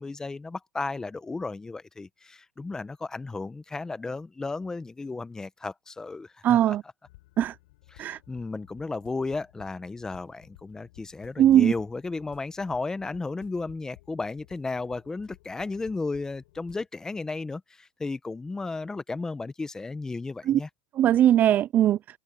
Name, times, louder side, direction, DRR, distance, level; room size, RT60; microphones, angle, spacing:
voice 1, 0.0-6.8 7.9-20.7, left 3 dB, 10° left, 1.0 m, -34 dB
voice 2, 6.4-6.8 7.4-7.5 8.0-8.2 11.4-11.7 20.5-20.6 21.0-22.0, right 11 dB, 30° right, 0.4 m, -20 dB
sound 1, 7.0-16.9, left 20 dB, 70° left, 5.5 m, -55 dB
supercardioid pair, 125°, 6 cm